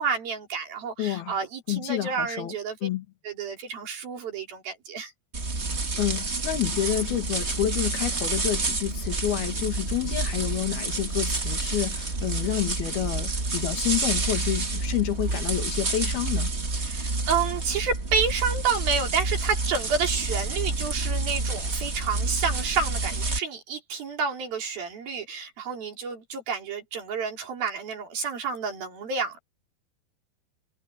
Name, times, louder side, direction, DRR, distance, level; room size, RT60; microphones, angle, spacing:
voice 1, 0.0-2.8 3.2-5.1 16.8-29.4, right 5 dB, 70° right, 5.7 m, -29 dB
voice 2, 1.0-1.4 1.7-2.6 2.8-3.1 6.0-16.5, left 12 dB, 75° left, 3.9 m, -29 dB
sound 1, 5.3-23.4, right 3 dB, 30° right, 1.2 m, -29 dB
omnidirectional pair, 4.4 m